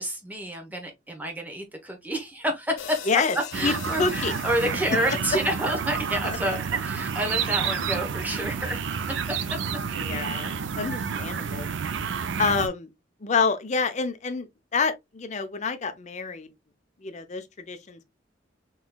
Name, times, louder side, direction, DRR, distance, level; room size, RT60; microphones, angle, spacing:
voice 1, 0.0-3.0 3.5-8.8 9.5-9.6, equal, 10° right, 0.9 m, -29 dB
sound 1, 2.8-7.1, left 9 dB, 90° left, 0.5 m, -43 dB
sound 2, 3.5-12.7, right 6 dB, 75° right, 0.4 m, -30 dB
voice 2, 3.6-4.4 6.2-6.4 9.9-11.7 12.4-12.9 13.2-16.5 17.0-18.0, left 4 dB, 40° left, 0.6 m, -27 dB
3.7 x 3.0 x 2.3 m
head